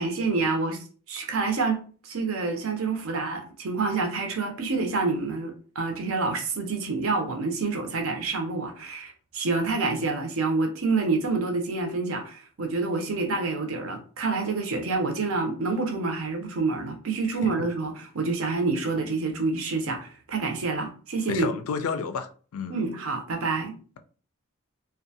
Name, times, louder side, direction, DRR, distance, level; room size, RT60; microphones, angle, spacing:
voice 1, 0.0-21.5 22.7-23.8, right 3 dB, 70° right, 0.6 m, -28 dB
voice 2, 21.3-22.8, left 5 dB, 75° left, 0.4 m, -31 dB
2.5 x 2.2 x 2.7 m
head